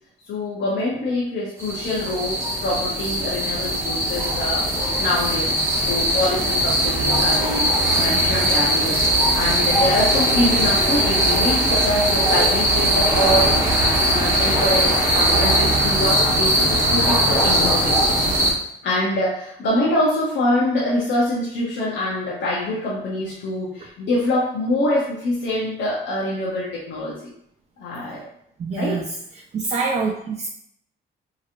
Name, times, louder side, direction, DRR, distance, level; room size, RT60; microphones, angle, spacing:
voice 1, 0.3-4.6 5.0-5.5 5.9-18.0 18.8-27.3 27.8-28.2 28.7-29.0, left 1 dB, 70° left, -6 dB, 0.8 m, -24 dB
sound 1, 1.6-18.5, right 1 dB, 15° right, 1.1 m, -20 dB
voice 2, 28.6-30.5, right 4 dB, 35° right, 0 dB, 0.4 m, -26 dB
3.0 x 2.8 x 2.5 m, 0.72 s
cardioid pair, 90°, 20 cm